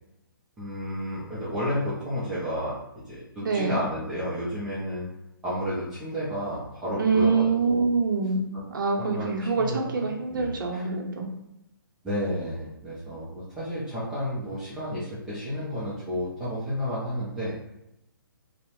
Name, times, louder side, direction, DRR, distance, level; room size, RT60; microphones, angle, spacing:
voice 1, 0.6-2.8 3.1-5.1 5.4-7.9 9.0-10.0 10.3-10.9 12.0-17.5, equal, 5° right, -11 dB, 0.4 m, -31 dB
voice 2, 3.4-3.9 7.0-11.3, right 4 dB, 60° right, 1 dB, 0.6 m, -25 dB
2.7 x 2.0 x 2.9 m, 0.85 s
hypercardioid pair, 160°, 12 cm